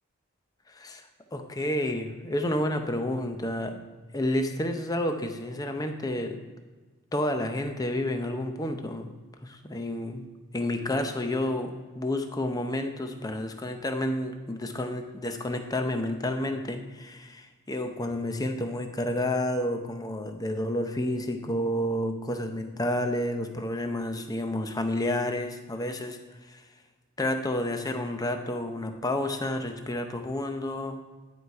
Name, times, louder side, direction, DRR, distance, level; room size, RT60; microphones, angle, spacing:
voice 1, 0.7-1.0 1.3-3.8 4.1-6.4 7.1-9.1 9.4-10.2 10.5-26.2 26.5-26.6 27.2-31.0, left 1 dB, 15° left, 6 dB, 0.6 m, -30 dB
10.5 x 4.9 x 4.6 m, 1.3 s
head